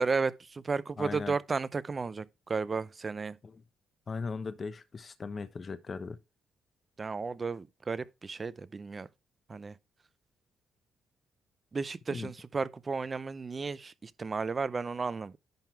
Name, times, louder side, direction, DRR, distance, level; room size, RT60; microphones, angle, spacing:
voice 1, 0.0-3.4 7.0-9.1 9.5-9.8 11.7-15.3, right 4 dB, 30° right, 0.6 m, -33 dB
voice 2, 1.0-1.4 3.4-3.6 4.1-6.2 12.1-12.3, left 4 dB, 40° left, 0.9 m, -38 dB
10.5 x 3.8 x 4.5 m
cardioid pair, 90°, 0 cm